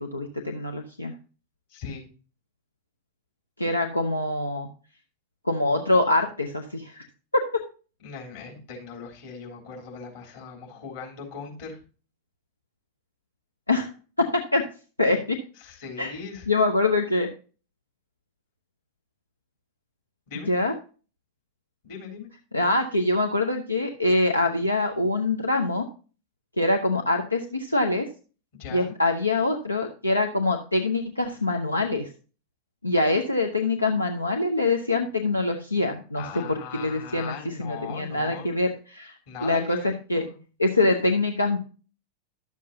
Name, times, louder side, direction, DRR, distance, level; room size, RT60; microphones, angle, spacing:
voice 1, 0.0-1.1 3.6-4.7 5.4-7.0 7.3-7.6 13.7-13.9 14.2-14.6 15.0-15.4 16.0-16.1 16.5-17.3 20.5-20.7 22.5-25.8 26.6-28.1 28.7-32.1 32.8-40.3 40.6-41.6, left 2 dB, 85° left, 3 dB, 0.7 m, -24 dB
voice 2, 1.7-2.0 8.0-11.8 15.6-16.5 20.3-20.5 21.8-22.3 28.6-28.9 36.1-38.5 39.3-40.3, left 6 dB, 55° left, -1 dB, 3.4 m, -39 dB
11.5 x 7.4 x 2.7 m, 0.36 s
figure-of-eight pair, 90°, 0 cm